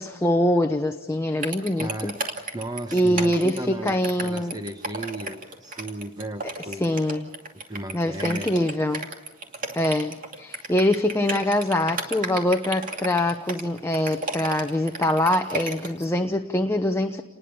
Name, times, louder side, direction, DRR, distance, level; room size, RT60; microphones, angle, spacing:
voice 1, 0.0-2.1 2.9-4.6 6.8-7.3 7.9-9.1 9.7-17.2, left 1 dB, 15° left, 5 dB, 0.9 m, -24 dB
sound 1, 1.4-16.1, right 3 dB, 40° right, 2.5 m, -33 dB
voice 2, 1.8-2.1 2.5-7.0 7.7-8.7, right 1 dB, 20° right, 8 dB, 1.0 m, -35 dB
29.0 x 20.0 x 7.0 m, 1.0 s
head